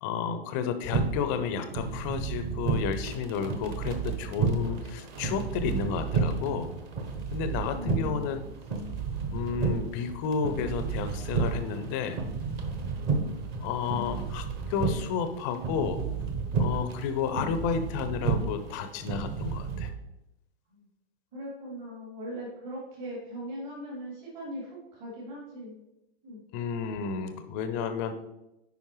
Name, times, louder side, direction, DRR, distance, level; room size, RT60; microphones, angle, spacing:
voice 1, 0.0-6.7 7.3-8.4 9.3-12.2 13.6-16.0 16.6-19.9 26.5-28.1, left 6 dB, 20° left, 9 dB, 0.4 m, -31 dB
sound 1, 0.8-19.9, right 4 dB, 30° right, 0.8 m, -32 dB
voice 2, 7.7-8.5 20.7-20.8 21.3-25.8 26.2-26.4, equal, 50° right, -5 dB, 2.7 m, -40 dB
8.6 x 5.3 x 3.1 m, 0.91 s
figure-of-eight pair, 115°, 31 cm